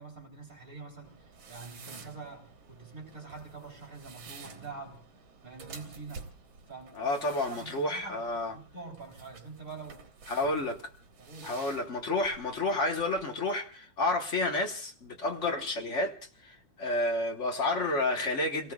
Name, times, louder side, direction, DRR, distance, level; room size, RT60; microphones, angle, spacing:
voice 1, 0.0-5.0 5.4-6.3 6.7-10.0 10.3-10.4 11.2-11.5 15.2-15.4, right 4 dB, 40° right, 4.3 m, -46 dB
sound 1, 1.0-13.2, right 5 dB, 80° right, 2.4 m, -51 dB
voice 2, 6.9-8.5 10.3-10.8 11.4-16.1 16.4-18.7, left 2 dB, 40° left, 1.5 m, -30 dB
29.0 x 18.0 x 2.4 m
omnidirectional pair, 2.2 m